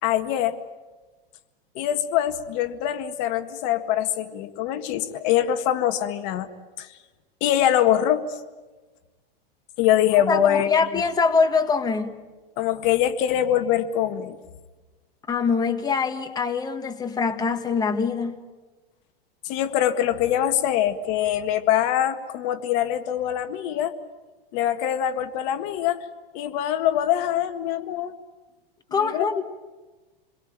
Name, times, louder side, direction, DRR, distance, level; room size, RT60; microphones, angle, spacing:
voice 1, 0.0-0.6 1.8-6.5 6.8-6.9 7.4-8.4 9.8-10.9 12.6-14.4 19.4-24.0 24.5-26.1 26.3-28.1 29.0-29.3, left 11 dB, 50° left, 8 dB, 1.8 m, -23 dB
voice 2, 10.3-12.1 15.3-18.4 28.9-29.4, left 5 dB, 15° left, 6 dB, 1.7 m, -23 dB
28.0 x 22.5 x 9.0 m, 1.2 s
supercardioid pair, 135°, 29 cm